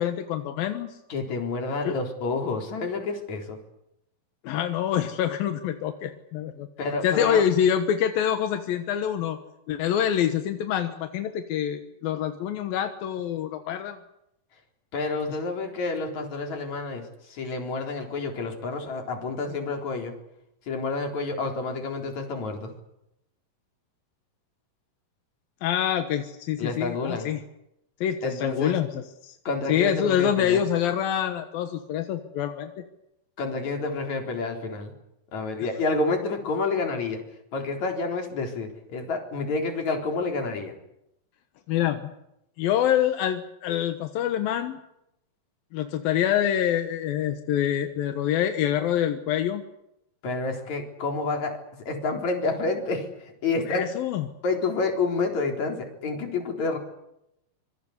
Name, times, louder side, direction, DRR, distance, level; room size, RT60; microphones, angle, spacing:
voice 1, 0.0-1.0 1.8-2.0 4.4-6.7 7.0-9.4 9.7-14.0 25.6-27.4 28.0-29.4 29.7-32.7 41.7-42.1 42.6-44.8 45.7-49.6 53.7-54.2, left 10 dB, 85° left, 7 dB, 3.1 m, -26 dB
voice 2, 1.1-3.6 6.8-7.4 14.9-20.1 20.7-22.7 26.6-27.3 28.2-28.8 29.5-30.7 33.4-34.9 35.3-37.2 37.5-40.7 50.2-53.9 54.4-56.8, left 3 dB, 50° left, 3 dB, 5.2 m, -29 dB
25.5 x 23.5 x 8.2 m, 0.82 s
omnidirectional pair, 4.1 m